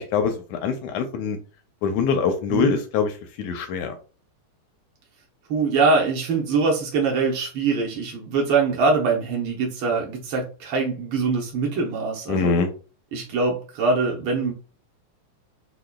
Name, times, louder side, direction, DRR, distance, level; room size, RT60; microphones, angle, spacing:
voice 1, 0.0-1.4 1.8-4.0 12.3-12.7, left 5 dB, 80° left, 6 dB, 1.7 m, -24 dB
voice 2, 5.5-12.5 13.1-14.5, right 4 dB, 80° right, -1 dB, 1.0 m, -23 dB
6.3 x 2.1 x 2.2 m, 0.35 s
omnidirectional pair, 3.4 m